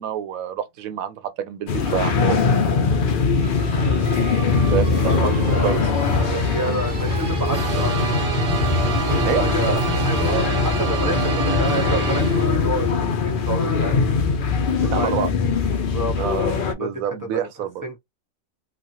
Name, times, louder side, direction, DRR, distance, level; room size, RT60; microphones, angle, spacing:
voice 1, 0.0-2.5 4.6-5.8 9.2-9.8 11.4-11.5 14.8-15.3 16.2-17.7, right 10 dB, 80° right, 1.0 m, -27 dB
sound 1, 1.7-16.7, left 5 dB, 55° left, 0.6 m, -21 dB
sound 2, 3.4-12.9, right 4 dB, 55° right, 0.7 m, -28 dB
voice 2, 5.0-5.8 6.3-8.2 9.1-14.0 14.8-15.1 15.7-16.1 16.4-16.5 16.8-17.5 17.8-18.0, right 1 dB, 15° right, 0.8 m, -29 dB
3.0 x 2.3 x 2.7 m
omnidirectional pair, 1.4 m